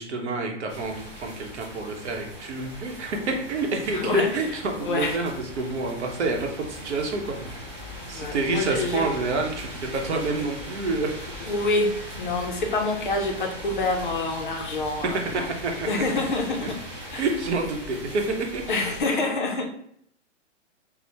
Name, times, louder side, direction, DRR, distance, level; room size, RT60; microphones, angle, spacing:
voice 1, 0.0-7.7 8.1-11.1 15.0-16.2 17.2-18.6, right 3 dB, 65° right, 2 dB, 0.8 m, -28 dB
sound 1, 0.7-19.0, equal, 25° right, 0.4 m, -40 dB
voice 2, 3.9-4.3 4.8-5.2 8.2-9.0 11.5-15.5 15.9-16.8 17.1-17.3 18.7-19.7, left 2 dB, 45° left, 2 dB, 0.4 m, -26 dB
3.2 x 2.0 x 2.7 m, 0.68 s
hypercardioid pair, 165°, 37 cm